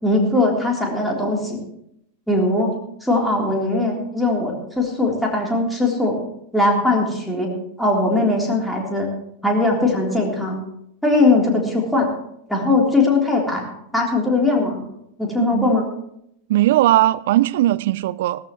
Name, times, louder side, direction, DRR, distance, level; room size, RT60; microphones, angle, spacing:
voice 1, 0.0-1.6 2.3-2.7 3.0-6.2 6.5-7.5 7.8-9.1 9.4-10.6 11.0-12.1 12.5-13.6 13.9-14.8 15.2-15.9, left 2 dB, ahead, -2 dB, 3.6 m, -20 dB
voice 2, 15.4-15.8 16.5-18.5, right 15 dB, 55° right, 17 dB, 0.4 m, -18 dB
17.5 x 14.0 x 3.1 m, 0.75 s
figure-of-eight pair, 90°, 0 cm